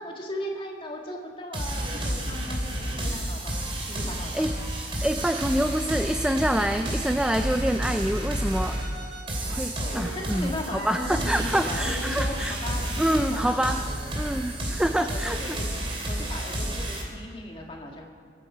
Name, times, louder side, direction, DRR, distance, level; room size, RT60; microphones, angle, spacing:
voice 1, 0.0-4.5 6.5-6.9 9.9-13.9 15.0-18.1, left 1 dB, 30° left, 0 dB, 1.9 m, -37 dB
sound 1, 1.5-17.0, right 1 dB, 30° right, 2.6 m, -31 dB
voice 2, 5.0-8.8 9.5-12.5 13.0-13.8 14.2-15.6, equal, 5° right, 7 dB, 0.4 m, -26 dB
22.5 x 9.3 x 5.0 m, 2.2 s
head